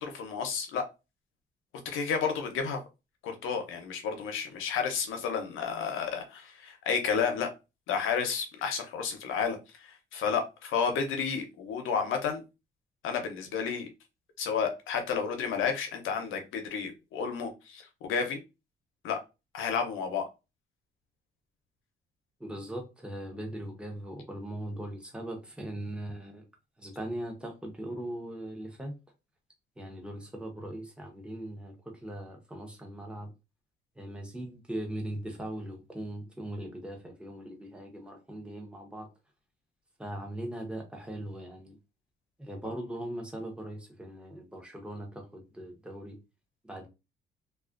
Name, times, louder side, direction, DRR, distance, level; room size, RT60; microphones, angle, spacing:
voice 1, 0.0-0.8 1.8-2.8 3.2-7.5 7.9-12.4 13.0-13.9 14.4-18.4 19.0-19.2 19.5-20.2, left 6 dB, 85° left, 0.7 m, -31 dB
voice 2, 22.4-26.4 26.8-28.9 29.8-33.3 34.0-39.1 40.0-41.8 42.4-46.2 46.6-46.9, right 1 dB, 5° right, 0.8 m, -40 dB
2.3 x 2.3 x 2.4 m
cardioid pair, 90°, 20 cm